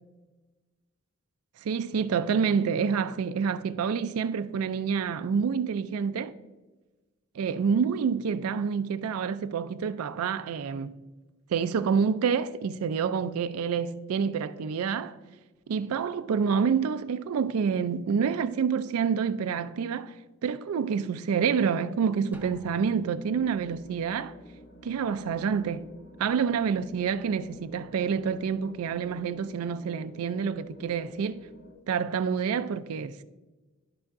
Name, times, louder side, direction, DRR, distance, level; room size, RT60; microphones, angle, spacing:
voice 1, 1.6-6.3 7.4-11.0 11.5-15.2 15.7-20.2 20.4-24.4 24.8-25.9 26.2-31.4 31.9-33.2, right 6 dB, 90° right, 0.4 m, -28 dB
Drum, 22.3-23.5, right 3 dB, 5° right, 0.7 m, -52 dB
sound 1, 23.2-31.7, left 1 dB, 90° left, 2.1 m, -51 dB
12.0 x 5.6 x 2.5 m
head